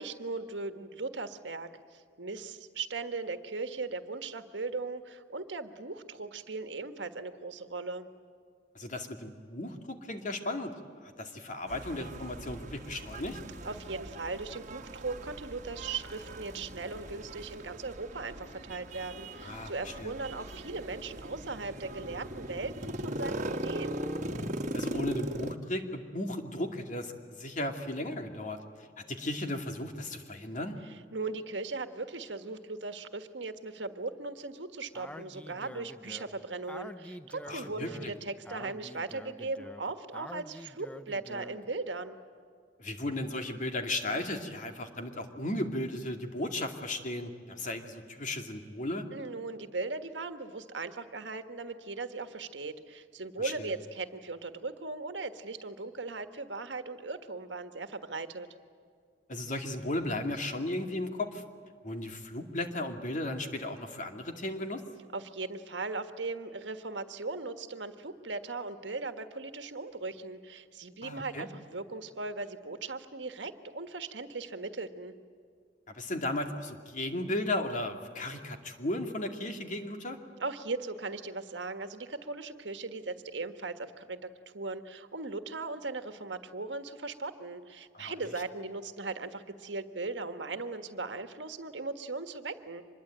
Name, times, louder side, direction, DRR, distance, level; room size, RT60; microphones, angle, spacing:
voice 1, 0.0-8.1 13.6-24.0 30.9-42.2 49.1-58.5 65.1-75.1 80.4-92.8, right 3 dB, 80° right, 9 dB, 1.6 m, -38 dB
voice 2, 8.7-10.7 11.0-13.4 19.4-20.1 24.7-30.8 37.4-38.1 42.8-49.1 53.4-53.7 59.3-61.4 61.8-64.8 71.0-71.5 75.9-80.2 87.9-88.1, left 1 dB, 45° left, 5 dB, 2.4 m, -35 dB
sound 1, 11.7-25.5, right 1 dB, 45° right, 1.6 m, -40 dB
Speech, 34.9-41.7, equal, 5° left, 0.8 m, -47 dB
25.5 x 21.0 x 8.9 m, 2.2 s
head